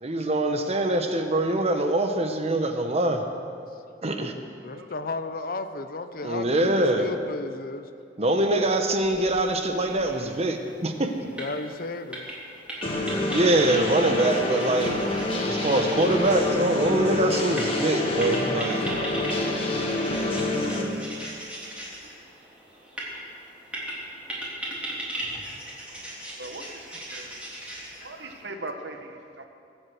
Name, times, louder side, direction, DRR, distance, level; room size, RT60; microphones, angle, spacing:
voice 1, 0.0-3.2 4.0-4.3 6.2-7.1 8.2-11.1 13.3-15.0 15.3-18.8, right 1 dB, 35° right, 5 dB, 1.2 m, -24 dB
voice 2, 4.6-7.9 11.1-12.6, left 3 dB, 55° left, 9 dB, 0.8 m, -34 dB
sound 1, 8.9-28.4, right 1 dB, 5° right, 3.3 m, -39 dB
sound 2, 12.8-20.8, left 2 dB, 30° left, 1.9 m, -27 dB
voice 3, 16.3-16.7 26.4-26.6 26.9-27.4 28.0-29.4, right 2 dB, 85° right, 5 dB, 1.4 m, -39 dB
23.5 x 8.2 x 6.2 m, 2.5 s
head